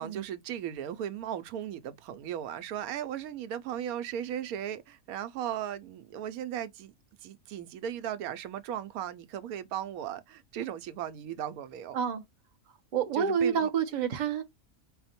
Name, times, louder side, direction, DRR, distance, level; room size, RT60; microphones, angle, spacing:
voice 1, 0.0-6.9 7.2-12.0 13.1-13.7, right 10 dB, 90° right, 1.0 m, -37 dB
voice 2, 12.9-14.4, right 7 dB, 50° right, 0.6 m, -28 dB
4.3 x 2.1 x 4.1 m
omnidirectional pair, 1.5 m